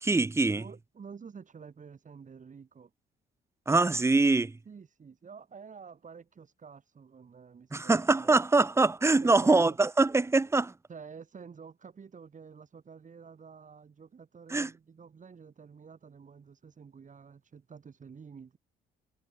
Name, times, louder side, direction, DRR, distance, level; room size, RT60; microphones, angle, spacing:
voice 1, 0.0-0.6 3.7-4.6 7.7-10.7 14.5-14.7, right 3 dB, 15° right, 0.6 m, -24 dB
voice 2, 0.5-2.9 4.7-8.5 9.2-9.8 10.9-18.6, right 6 dB, 40° right, 2.6 m, -49 dB
cardioid pair, 90°, 20 cm